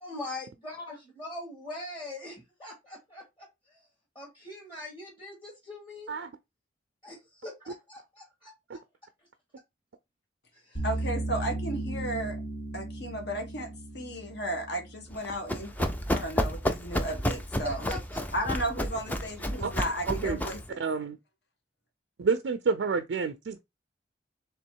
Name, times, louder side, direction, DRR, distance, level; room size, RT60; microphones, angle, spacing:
voice 1, 0.0-3.9 4.1-6.2 7.0-8.8 10.5-10.8 17.6-18.2, left 2 dB, 25° left, 1.5 m, -42 dB
voice 2, 10.8-12.4 12.7-15.7 16.1-17.9 18.3-20.8, right 1 dB, 60° left, 1.3 m, -34 dB
sound 1, 10.8-15.9, right 1 dB, 45° left, 1.6 m, -36 dB
Run, 15.1-20.7, equal, 10° left, 0.4 m, -31 dB
voice 3, 20.1-20.4 20.8-21.2 22.2-23.6, right 5 dB, 75° right, 0.4 m, -29 dB
3.4 x 3.1 x 4.5 m
head